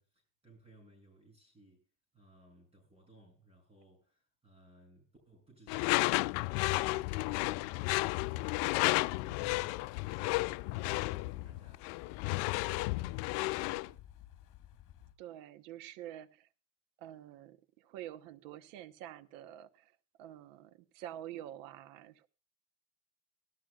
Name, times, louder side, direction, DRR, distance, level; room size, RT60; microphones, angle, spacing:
voice 1, 0.0-1.9 2.1-13.4 13.9-14.1, right 1 dB, 15° right, 7.4 m, -61 dB
Door / Screech, 5.7-13.9, left 23 dB, 80° left, 0.5 m, -32 dB
Wind, 6.0-15.2, left 12 dB, 55° left, 1.7 m, -54 dB
voice 2, 15.2-16.5 17.0-19.9 20.2-22.3, right 12 dB, 85° right, 1.1 m, -47 dB
18.0 x 13.0 x 2.4 m
supercardioid pair, 100°, 37 cm